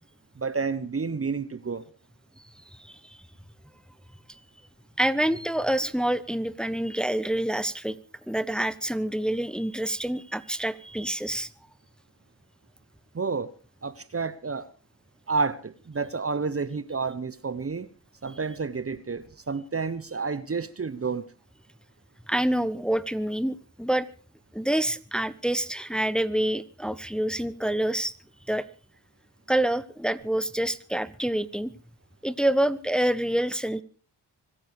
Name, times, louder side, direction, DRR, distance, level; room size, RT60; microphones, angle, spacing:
voice 1, 0.4-1.8 13.1-13.5 13.8-14.7 15.3-17.9 18.2-21.3, right 4 dB, 30° right, 1.2 m, -30 dB
voice 2, 2.7-3.2 5.0-8.0 8.3-11.5 22.3-24.1 24.5-28.1 28.5-28.7 29.5-31.7 32.2-33.8, right 1 dB, ahead, 1.2 m, -27 dB
25.5 x 10.0 x 4.9 m
supercardioid pair, 45°, 44 cm